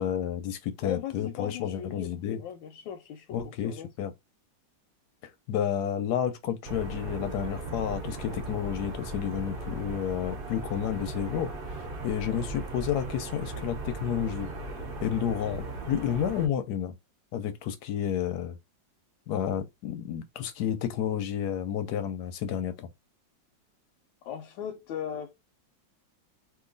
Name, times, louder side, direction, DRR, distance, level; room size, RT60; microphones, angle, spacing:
voice 1, 0.0-2.4 3.3-4.1 5.5-11.5 12.0-14.5 15.0-17.0 17.3-18.6 19.3-22.9, left 9 dB, 70° left, 1.0 m, -31 dB
voice 2, 0.8-3.9 12.3-12.5 24.2-25.3, left 9 dB, 85° left, 1.3 m, -38 dB
sound 1, 6.6-16.5, right 3 dB, 60° right, 0.6 m, -37 dB
2.9 x 2.6 x 3.8 m
omnidirectional pair, 2.0 m